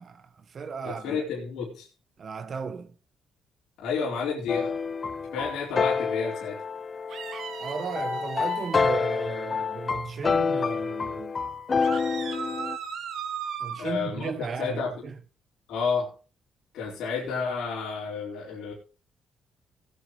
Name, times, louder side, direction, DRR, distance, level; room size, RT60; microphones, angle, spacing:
voice 1, 0.0-1.2 2.2-2.9 7.6-11.4 13.6-15.2, right 5 dB, 50° right, 1.4 m, -35 dB
voice 2, 0.8-1.9 3.8-4.7 5.3-6.6 13.8-15.1 15.7-16.1 16.7-18.7, left 5 dB, 85° left, 4.5 m, -31 dB
sound 1, 4.5-12.8, left 5 dB, 35° left, 0.8 m, -28 dB
sound 2, 7.1-8.9 11.8-13.9, right 7 dB, 70° right, 1.9 m, -36 dB
18.5 x 9.6 x 3.2 m
cardioid pair, 90°, 0 cm